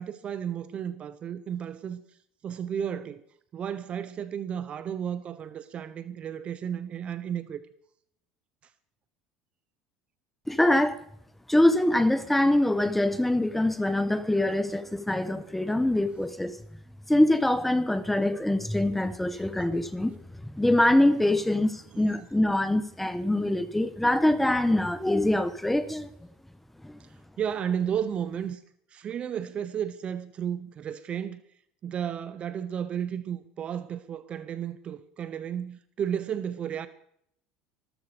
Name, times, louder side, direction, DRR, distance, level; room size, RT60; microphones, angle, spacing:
voice 1, 0.0-2.0 2.4-3.2 3.5-7.6 19.3-19.4 21.9-22.3 27.0-28.6 28.9-31.4 31.8-36.9, right 8 dB, 40° right, 0.9 m, -33 dB
voice 2, 10.5-11.0 11.5-16.6 17.1-20.2 20.5-26.1 26.8-27.0, left 1 dB, 5° left, 1.3 m, -24 dB
14.0 x 13.5 x 5.1 m
supercardioid pair, 105°, 3 cm